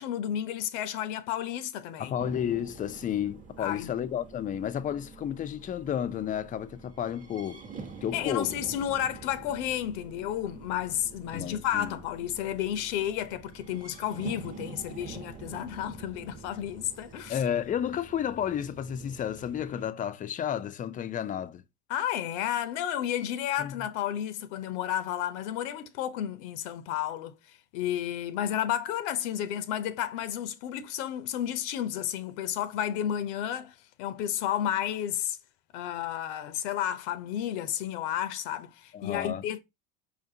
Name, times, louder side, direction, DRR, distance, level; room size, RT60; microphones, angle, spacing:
voice 1, 0.0-2.2 3.6-3.9 8.1-17.4 21.9-27.3 27.7-35.4 35.7-39.6, left 11 dB, 70° left, 0.6 m, -32 dB
voice 2, 2.0-7.6 8.0-8.6 11.3-12.0 17.3-21.6 23.6-23.7 38.9-39.4, left 9 dB, 25° left, 0.3 m, -32 dB
sound 1, 2.2-19.9, right 4 dB, 20° right, 1.0 m, -47 dB
4.9 x 2.5 x 2.7 m
supercardioid pair, 90°, 35 cm